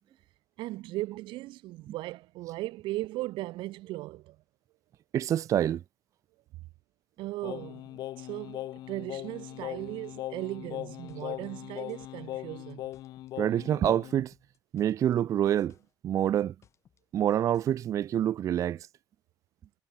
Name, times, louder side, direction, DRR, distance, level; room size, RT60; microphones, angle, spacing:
voice 1, 0.6-4.4 7.2-12.9, right 18 dB, 85° right, 1.2 m, -37 dB
voice 2, 5.1-5.8 13.4-14.3 14.7-15.7 16.0-16.5 17.1-18.9, right 10 dB, 40° right, 0.5 m, -26 dB
Singing, 7.4-14.3, left 14 dB, 55° left, 0.3 m, -40 dB
sound 1, 10.9-13.4 13.6-15.2 15.5-17.8, left 8 dB, 35° left, 6.6 m, -64 dB
cardioid pair, 175°, 8 cm